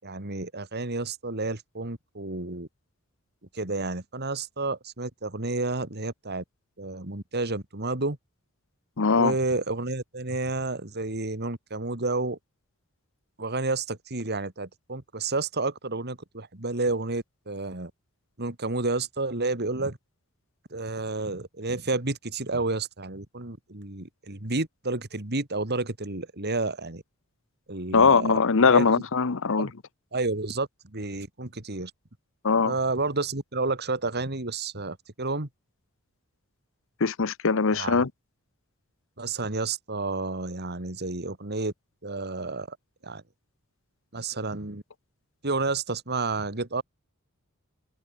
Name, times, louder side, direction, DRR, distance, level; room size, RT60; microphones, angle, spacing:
voice 1, 0.0-2.7 3.5-6.4 6.8-8.2 9.2-12.4 13.4-17.9 18.4-20.0 20.7-27.0 27.7-28.4 28.7-29.0 29.6-29.7 30.1-31.9 32.6-35.5 37.7-38.1 39.2-41.7 42.0-42.8 43.0-43.2 44.1-44.8 45.4-46.8, right 3 dB, 50° right, 2.8 m, -30 dB
voice 2, 9.0-9.3 27.9-29.7 32.4-32.7 37.0-38.1, left 5 dB, 65° left, 0.9 m, -21 dB
head